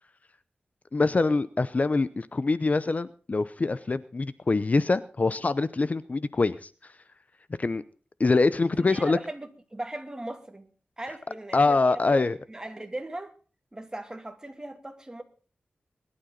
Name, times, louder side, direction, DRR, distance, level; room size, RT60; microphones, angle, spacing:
voice 1, 0.9-6.7 7.6-7.8 8.2-9.2 11.5-12.4, left 3 dB, 45° left, 0.7 m, -24 dB
voice 2, 8.8-10.7 11.0-13.3 13.7-15.2, right 1 dB, 20° right, 2.6 m, -38 dB
21.5 x 12.0 x 4.0 m
wide cardioid pair, 85°, 4 cm